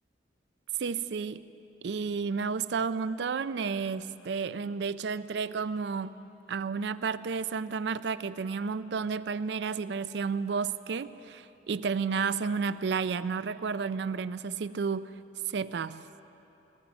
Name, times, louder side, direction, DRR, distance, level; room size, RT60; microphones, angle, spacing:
voice 1, 0.8-1.4 1.8-6.2 6.5-15.1 15.5-16.0, right 5 dB, 70° right, 15 dB, 0.4 m, -31 dB
18.5 x 14.5 x 5.2 m, 2.9 s
head